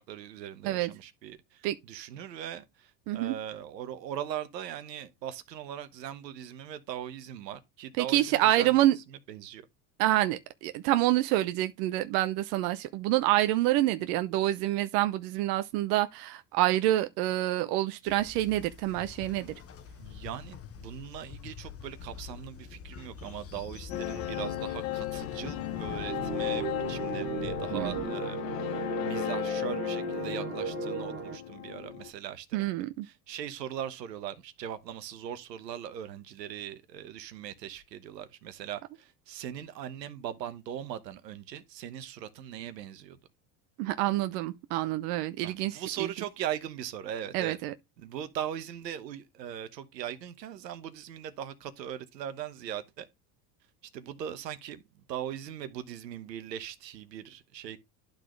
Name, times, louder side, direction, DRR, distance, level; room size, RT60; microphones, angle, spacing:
voice 1, 0.0-9.7 20.0-32.7 33.0-43.2 45.4-47.6 48.0-53.0 53.9-57.8, right 10 dB, 85° right, 1.2 m, -40 dB
voice 2, 8.0-9.0 10.0-19.5 27.7-28.0 32.5-33.1 43.8-46.1 47.3-47.7, right 15 dB, 65° right, 0.8 m, -27 dB
Train, 18.1-28.1, left 7 dB, 30° left, 1.1 m, -46 dB
sound 1, 23.9-32.1, left 14 dB, 65° left, 1.2 m, -35 dB
sound 2, 26.0-31.4, right 9 dB, 25° right, 0.6 m, -37 dB
11.5 x 4.0 x 3.2 m
hypercardioid pair, 90°, 49 cm